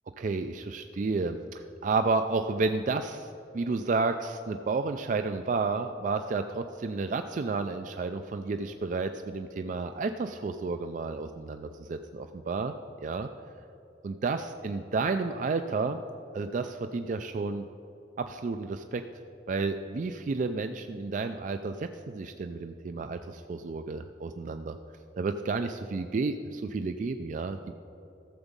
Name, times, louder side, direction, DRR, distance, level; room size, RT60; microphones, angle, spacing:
voice 1, 0.2-12.8 13.0-13.3 14.0-16.0 16.3-17.7 18.2-19.0 19.5-24.8 25.2-27.7, right 4 dB, 45° right, 8 dB, 0.3 m, -31 dB
13.5 x 7.1 x 5.2 m, 2.8 s
head